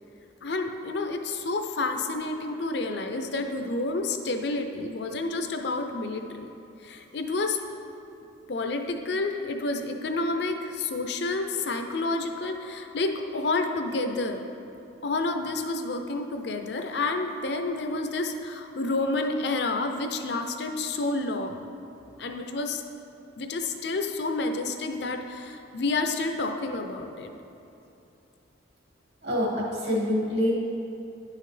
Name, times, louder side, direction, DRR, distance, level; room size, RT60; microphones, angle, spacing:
voice 1, 0.4-6.5 6.8-7.6 8.5-14.4 15.0-21.6 22.2-22.8 23.4-27.3, left 3 dB, 60° left, 5 dB, 0.5 m, -29 dB
voice 2, 29.2-30.5, left 1 dB, 60° right, -3 dB, 1.5 m, -26 dB
10.0 x 5.6 x 3.3 m, 2.8 s
head